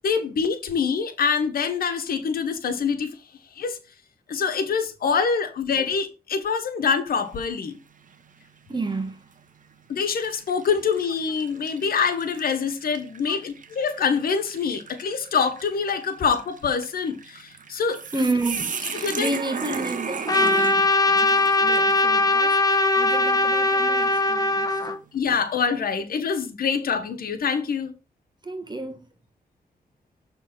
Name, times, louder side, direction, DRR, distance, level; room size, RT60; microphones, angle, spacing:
voice 1, 0.0-3.1 3.6-3.8 4.3-7.8 9.9-18.3 19.0-19.3 25.1-27.9, left 6 dB, 80° left, 1.1 m, -25 dB
sound 1, 7.1-7.6 8.1-8.2 9.2-9.4 10.0-22.0, right 5 dB, 60° right, 1.0 m, -36 dB
voice 2, 8.7-9.2 13.3-13.4 18.1-24.9 28.4-29.1, right 2 dB, 30° right, 1.3 m, -31 dB
Trumpet, 20.3-25.0, left 2 dB, 25° left, 1.0 m, -20 dB
6.4 x 3.4 x 6.0 m
cardioid pair, 60°, 15 cm